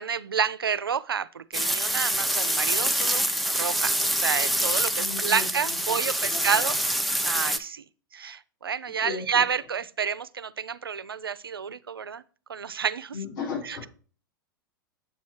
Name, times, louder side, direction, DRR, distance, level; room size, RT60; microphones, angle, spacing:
voice 1, 0.0-6.8 7.2-7.8 8.1-12.2 12.5-13.1 13.7-13.8, right 6 dB, 90° right, 0.4 m, -29 dB
sound 1, 1.5-7.6, right 1 dB, ahead, 0.5 m, -26 dB
voice 2, 5.0-6.6 9.0-9.5 13.1-13.9, left 6 dB, 60° left, 3.8 m, -36 dB
7.8 x 3.1 x 5.5 m
hypercardioid pair, 100°, 12 cm